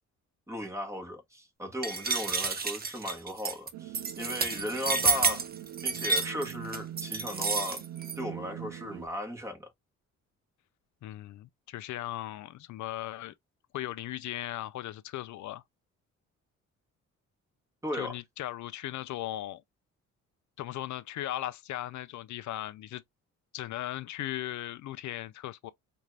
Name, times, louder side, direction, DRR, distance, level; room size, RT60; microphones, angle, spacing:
voice 1, 0.5-5.5 5.8-7.8 8.2-9.7 17.8-18.2, equal, 10° right, 1.6 m, -36 dB
sound 1, 1.8-8.2, right 4 dB, 30° right, 0.9 m, -30 dB
sound 2, 3.7-9.1, right 12 dB, 75° right, 0.6 m, -43 dB
voice 2, 11.0-13.3 13.7-15.6 17.9-19.6 20.6-23.0 23.5-25.7, left 14 dB, 70° left, 0.5 m, -37 dB
4.0 x 2.7 x 3.2 m
cardioid pair, 90°, 30 cm